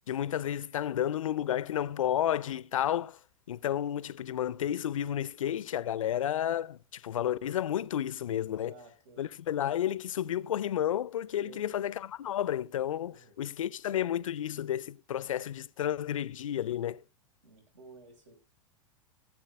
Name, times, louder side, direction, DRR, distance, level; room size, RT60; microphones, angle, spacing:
voice 1, 0.1-3.2 3.5-8.7 9.2-17.0, left 11 dB, 75° left, 0.5 m, -31 dB
voice 2, 8.4-9.3 11.4-11.8 13.0-13.5 17.4-18.3, right 3 dB, 65° right, 5.8 m, -54 dB
16.5 x 7.4 x 3.6 m
hypercardioid pair, 95°, 17 cm